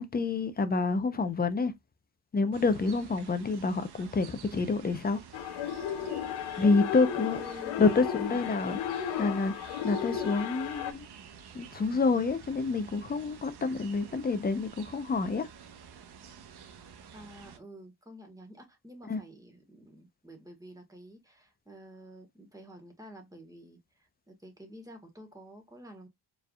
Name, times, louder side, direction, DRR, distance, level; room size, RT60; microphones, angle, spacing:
voice 1, 0.0-1.7 2.3-5.2 6.6-7.4 7.8-11.1 11.5-15.5 19.1-19.2, left 4 dB, 20° left, 0.7 m, -28 dB
sound 1, 2.5-17.6, right 7 dB, 70° right, 1.0 m, -50 dB
sound 2, 5.3-10.9, left 9 dB, 85° left, 0.8 m, -34 dB
voice 2, 7.3-8.6 16.8-26.1, equal, 10° right, 1.6 m, -50 dB
4.6 x 3.4 x 2.3 m
cardioid pair, 95°, 41 cm